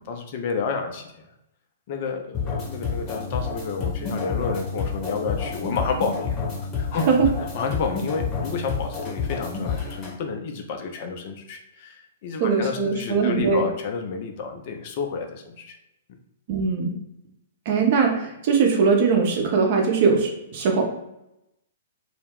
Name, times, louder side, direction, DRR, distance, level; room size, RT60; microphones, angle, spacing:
voice 1, 0.1-1.1 1.9-6.4 6.8-7.0 7.4-15.8, left 5 dB, 45° left, 4 dB, 0.4 m, -30 dB
sound 1, 2.3-10.1, left 5 dB, 25° left, 0.8 m, -29 dB
voice 2, 12.4-13.6 16.5-16.9 17.7-20.8, right 5 dB, 45° right, 1 dB, 0.6 m, -21 dB
2.2 x 2.0 x 3.3 m, 0.86 s
figure-of-eight pair, 110°, 0 cm